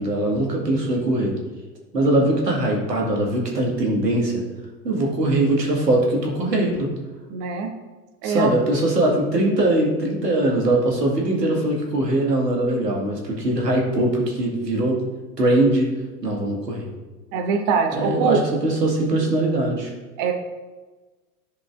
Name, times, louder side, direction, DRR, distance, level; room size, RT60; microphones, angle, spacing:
voice 1, 0.0-1.4 1.9-4.4 4.8-6.9 8.2-15.0 15.4-15.9 16.2-16.9 17.9-19.9, right 1 dB, 85° right, -1 dB, 2.0 m, -21 dB
voice 2, 7.3-7.7 8.2-8.5 17.3-18.4 20.2-20.3, right 6 dB, 45° right, 3 dB, 1.3 m, -23 dB
12.5 x 5.3 x 2.5 m, 1.2 s
figure-of-eight pair, 90°, 47 cm